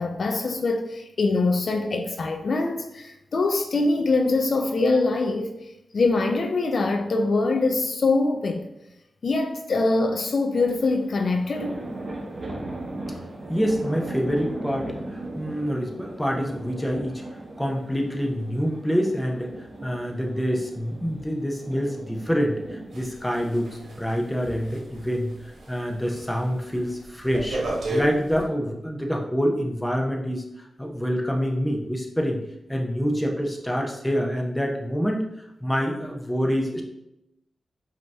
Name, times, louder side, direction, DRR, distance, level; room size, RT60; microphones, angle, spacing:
voice 1, 0.0-5.5 5.9-8.6 9.2-11.8, left 3 dB, 60° left, 4 dB, 0.5 m, -23 dB
sound 1, 10.6-26.9, right 2 dB, 50° right, 1.0 m, -39 dB
voice 2, 13.5-17.2 17.6-25.3 25.7-27.6 27.9-32.4 32.7-35.2 35.6-36.8, equal, 10° left, 1 dB, 0.9 m, -26 dB
sound 2, 22.9-25.7 26.1-26.4 26.7-28.4, right 1 dB, 80° right, 1.2 m, -32 dB
5.2 x 2.9 x 3.5 m, 0.87 s
cardioid pair, 70°, 0 cm